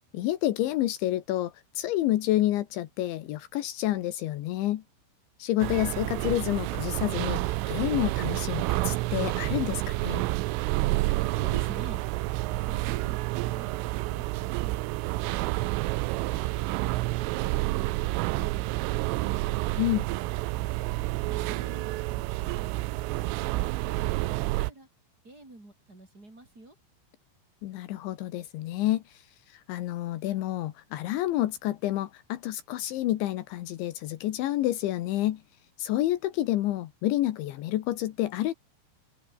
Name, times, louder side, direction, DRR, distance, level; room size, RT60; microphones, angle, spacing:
voice 1, 0.1-4.8 5.4-10.2 19.8-20.1 27.6-29.0 29.7-35.4 35.8-38.5, left 14 dB, 75° left, 3.5 m, -29 dB
sound 1, 5.6-24.7, right 20 dB, 90° right, 3.4 m, -29 dB
voice 2, 11.3-12.0 12.5-14.8 25.2-26.8, right 2 dB, 20° right, 6.7 m, -49 dB
omnidirectional pair, 5.6 m